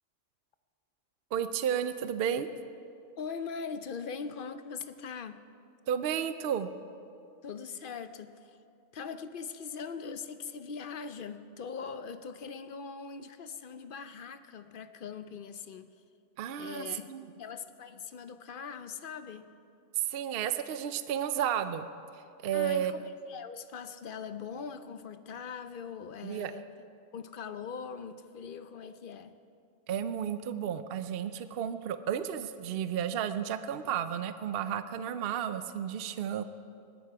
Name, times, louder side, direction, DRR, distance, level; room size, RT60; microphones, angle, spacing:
voice 1, 1.3-2.5 5.9-6.7 16.4-17.2 20.0-21.9 22.1-23.0 26.2-26.5 29.9-36.4, right 9 dB, 60° right, 11 dB, 0.7 m, -32 dB
voice 2, 3.2-5.4 7.4-8.6 8.9-15.9 16.6-17.1 17.4-19.5 22.5-26.7 27.1-29.3, left 6 dB, 55° left, 11 dB, 0.7 m, -41 dB
20.0 x 12.5 x 4.7 m, 2.5 s
omnidirectional pair, 1.2 m